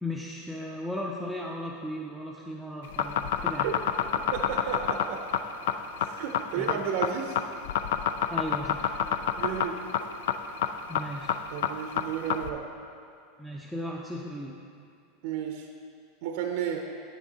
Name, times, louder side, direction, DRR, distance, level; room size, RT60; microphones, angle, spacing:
voice 1, 0.0-3.7 6.6-6.9 8.3-9.0 10.9-11.4 13.4-14.6, left 1 dB, ahead, -2 dB, 0.6 m, -36 dB
sound 1, 2.8-12.5, left 9 dB, 75° left, 0.4 m, -27 dB
voice 2, 4.3-5.3 6.0-7.4 9.4-9.8 11.5-12.7 15.2-15.7 16.2-16.9, right 8 dB, 65° right, 3 dB, 0.6 m, -32 dB
8.9 x 6.0 x 4.1 m, 2.4 s
hypercardioid pair, 105°, 0 cm